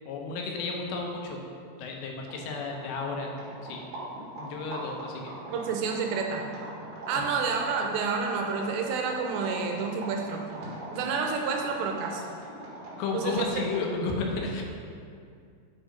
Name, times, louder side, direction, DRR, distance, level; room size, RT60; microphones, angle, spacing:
voice 1, 0.1-1.5 1.8-3.9 4.4-5.4 7.2-7.3 13.0-14.6, left 3 dB, 85° left, 1 dB, 3.1 m, -33 dB
sound 1, 2.2-14.0, right 1 dB, 60° right, 3.2 m, -41 dB
voice 2, 5.5-6.4 7.1-10.5 10.9-12.2 13.1-13.5, right 5 dB, 80° right, 2 dB, 2.8 m, -29 dB
9.3 x 4.9 x 5.1 m, 2.3 s
omnidirectional pair, 5.0 m